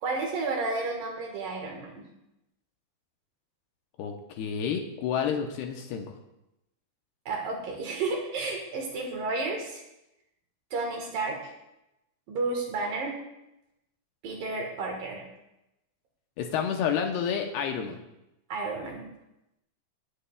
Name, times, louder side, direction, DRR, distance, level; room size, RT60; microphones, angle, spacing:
voice 1, 0.0-2.0 7.3-9.8 10.7-11.5 12.3-13.2 14.2-15.3 18.5-19.1, right 3 dB, 60° right, 1 dB, 2.8 m, -32 dB
voice 2, 4.0-6.1 16.4-18.0, left 7 dB, 75° left, 3 dB, 2.7 m, -30 dB
18.5 x 9.8 x 2.4 m, 0.89 s
omnidirectional pair, 5.0 m